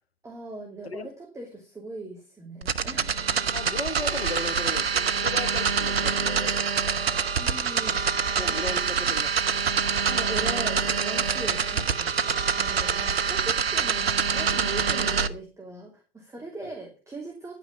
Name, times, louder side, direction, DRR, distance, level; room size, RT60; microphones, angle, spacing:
voice 1, 0.2-3.2 7.4-8.9 10.1-17.6, right 2 dB, 10° right, 2.7 m, -40 dB
sound 1, 2.6-15.3, right 6 dB, 80° right, 0.9 m, -25 dB
voice 2, 3.5-6.9 8.4-9.4 12.0-12.1 16.6-16.7, left 3 dB, 85° left, 1.0 m, -36 dB
11.0 x 9.2 x 5.2 m
figure-of-eight pair, 100°, 30 cm